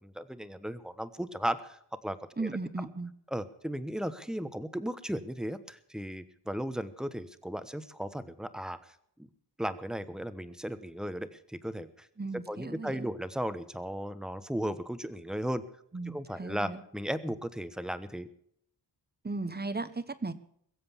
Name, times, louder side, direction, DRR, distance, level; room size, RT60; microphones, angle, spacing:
voice 1, 0.0-2.5 2.8-2.9 3.3-8.9 9.6-12.1 12.5-15.6 16.1-18.3, equal, ahead, 13 dB, 1.0 m, -36 dB
voice 2, 2.4-3.1 12.2-13.1 15.9-16.8 19.2-20.3, right 3 dB, 25° right, 13 dB, 1.1 m, -36 dB
22.0 x 7.8 x 7.1 m, 0.67 s
wide cardioid pair, 100°, 40 cm